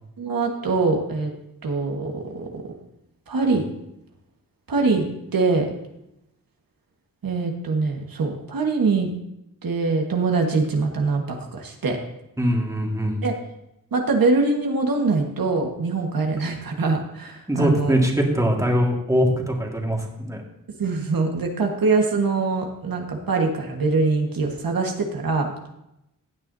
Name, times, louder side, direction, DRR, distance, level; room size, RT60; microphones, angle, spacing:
voice 1, 0.2-1.3 1.6-2.6 3.3-3.6 4.7-5.0 5.3-5.7 7.2-9.1 9.6-12.0 13.2-13.4 13.9-17.9 18.6-18.7 20.8-25.5, right 3 dB, 80° right, 1 dB, 1.5 m, -23 dB
voice 2, 12.4-13.2 17.5-20.4, equal, 10° right, 0 dB, 1.8 m, -22 dB
16.0 x 9.0 x 2.7 m, 0.86 s
wide cardioid pair, 100°, 34 cm